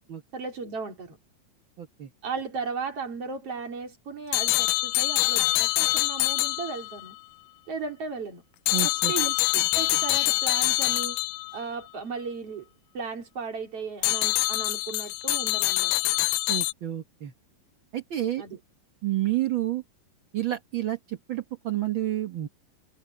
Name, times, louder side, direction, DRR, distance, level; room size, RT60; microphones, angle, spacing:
voice 1, 0.3-1.2 2.2-7.2 7.7-8.4 8.8-11.2 11.5-12.7 12.9-15.9 18.4-18.6, right 5 dB, 40° right, 4.2 m, -36 dB
voice 2, 1.8-2.1 8.7-9.1 16.5-17.3 17.9-18.4 19.0-19.8 20.3-22.5, right 14 dB, 70° right, 1.1 m, -29 dB
sound 1, 4.3-7.1 8.7-11.6 14.0-16.7, left 20 dB, 85° left, 2.3 m, -25 dB
omnidirectional pair, 4.3 m